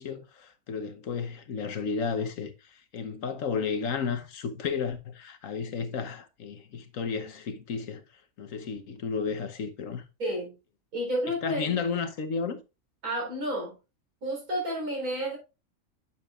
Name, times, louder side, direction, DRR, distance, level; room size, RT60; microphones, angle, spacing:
voice 1, 0.0-8.0 8.4-10.0 11.4-12.6, left 5 dB, 65° left, 1.3 m, -32 dB
voice 2, 10.2-10.5 10.9-11.6 13.0-13.8 14.2-15.4, equal, 85° right, 4.5 m, -30 dB
9.6 x 7.1 x 2.4 m
omnidirectional pair, 1.5 m